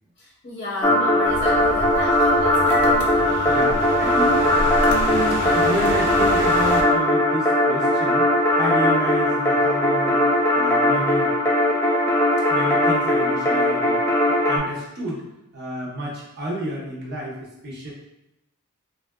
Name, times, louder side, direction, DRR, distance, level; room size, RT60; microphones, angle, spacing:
voice 1, 0.2-3.3, left 2 dB, 40° left, -6 dB, 0.8 m, -33 dB
sound 1, 0.8-14.6, left 1 dB, 10° left, 0.4 m, -19 dB
sound 2, 1.3-6.8, left 1 dB, 80° left, 0.6 m, -29 dB
voice 2, 3.5-8.3 8.6-10.3 10.5-11.3 12.5-14.2 14.5-15.3 15.5-17.9, right 1 dB, 50° right, -5 dB, 0.9 m, -30 dB
3.8 x 2.4 x 2.3 m, 0.90 s
head